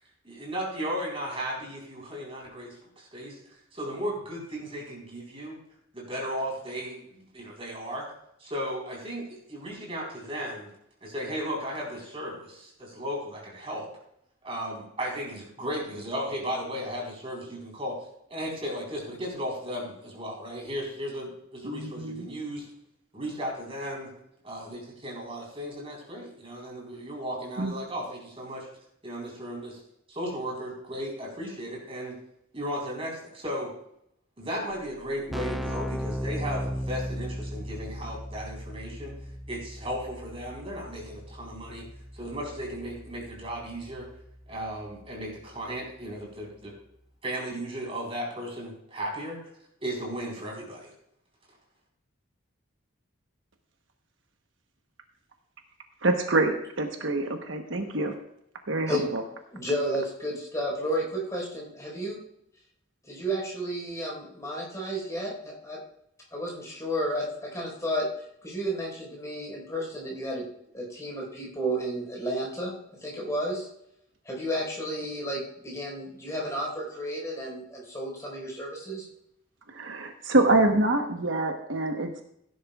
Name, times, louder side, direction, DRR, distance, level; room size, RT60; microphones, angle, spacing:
voice 1, 0.2-2.7 3.0-3.4 3.7-5.6 5.9-8.1 8.4-10.7 11.0-13.9 14.4-18.0 18.3-22.7 23.1-24.1 24.4-28.7 29.0-29.8 30.1-32.2 32.5-33.7 34.4-39.1 39.5-41.9 42.1-44.1 44.5-46.7 47.2-49.4 49.8-50.9, equal, 30° right, -2 dB, 4.1 m, -35 dB
voice 2, 21.6-22.3 27.6-27.7 56.0-58.1 58.7-59.2 79.7-82.2, right 2 dB, 70° right, 4 dB, 1.1 m, -26 dB
Keyboard (musical), 34.7-34.8 35.0-45.6, equal, ahead, 0.3 m, -37 dB
voice 3, 59.5-62.2 63.0-65.8 66.3-68.1 68.4-70.4 70.7-72.7 73.0-73.7 74.2-79.1, equal, 15° left, -3 dB, 4.4 m, -32 dB
16.5 x 11.0 x 2.4 m, 0.75 s
head